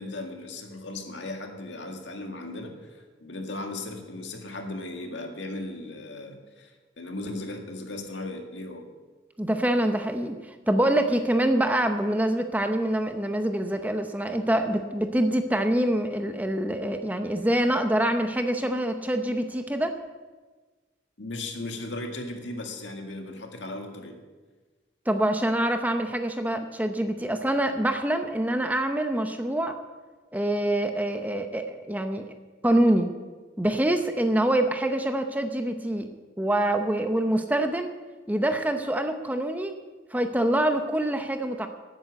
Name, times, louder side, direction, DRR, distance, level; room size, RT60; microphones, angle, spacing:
voice 1, 0.0-8.9 21.2-24.2, left 2 dB, 85° left, 3 dB, 1.9 m, -37 dB
voice 2, 9.4-20.0 25.1-29.8 30.3-32.3 32.6-33.1 33.6-36.1 36.4-37.9 38.3-39.8 40.1-41.7, right 1 dB, 10° right, 6 dB, 0.7 m, -25 dB
12.5 x 9.0 x 8.1 m, 1.3 s
head